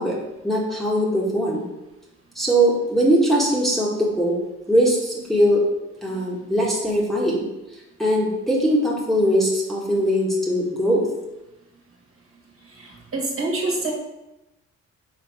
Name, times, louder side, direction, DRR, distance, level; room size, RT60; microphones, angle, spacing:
voice 1, 0.0-1.6 2.4-4.4 4.7-5.6 6.0-7.5 8.0-11.1, equal, ahead, -5 dB, 1.7 m, -21 dB
voice 2, 12.6-13.9, right 2 dB, 45° right, -2 dB, 1.9 m, -27 dB
5.7 x 3.9 x 5.0 m, 0.96 s
cardioid pair, 90°, 30 cm